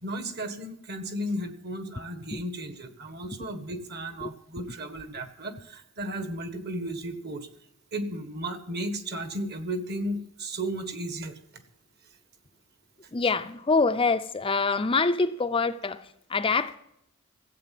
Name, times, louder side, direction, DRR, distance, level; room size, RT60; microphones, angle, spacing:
voice 1, 0.0-7.5 7.9-11.4, right 1 dB, 45° right, 1.6 m, -34 dB
voice 2, 13.1-16.8, left 4 dB, 25° left, 0.5 m, -25 dB
15.0 x 8.4 x 7.7 m
head